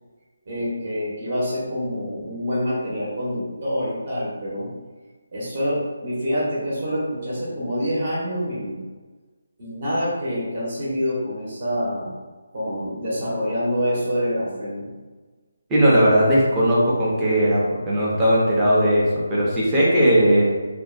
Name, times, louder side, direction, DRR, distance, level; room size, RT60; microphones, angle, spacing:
voice 1, 0.5-4.7 5.3-8.8 9.6-12.1 12.5-14.9, equal, 45° right, -7 dB, 0.8 m, -26 dB
voice 2, 15.7-20.5, equal, 10° right, -8 dB, 0.5 m, -18 dB
2.5 x 2.1 x 2.4 m, 1.3 s
figure-of-eight pair, 165°, 0 cm